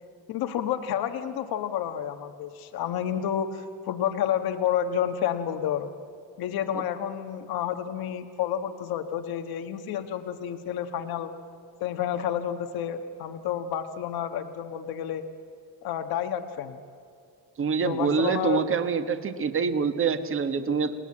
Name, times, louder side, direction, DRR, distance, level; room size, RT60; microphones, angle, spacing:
voice 1, 0.3-5.9 6.4-11.3 11.8-15.3 15.8-16.8 17.8-18.6, left 9 dB, 75° left, 7 dB, 1.4 m, -30 dB
voice 2, 17.6-20.9, right 5 dB, 35° right, 9 dB, 1.5 m, -26 dB
30.0 x 19.0 x 8.6 m, 2.4 s
cardioid pair, 155°, 37 cm